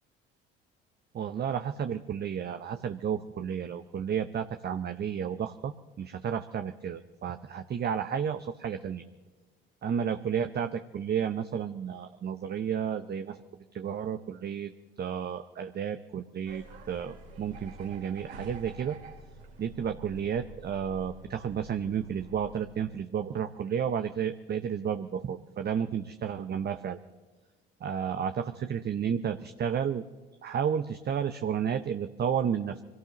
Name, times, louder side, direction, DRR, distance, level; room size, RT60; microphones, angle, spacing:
voice 1, 1.1-9.0 9.8-13.4 13.7-14.7 15.0-19.0 19.6-27.0 27.8-30.0 30.4-32.8, right 8 dB, 35° right, 9 dB, 0.7 m, -32 dB
sound 1, 16.4-22.7, right 2 dB, 70° right, 3.2 m, -48 dB
26.0 x 17.0 x 3.0 m, 1.4 s
figure-of-eight pair, 55°, 30 cm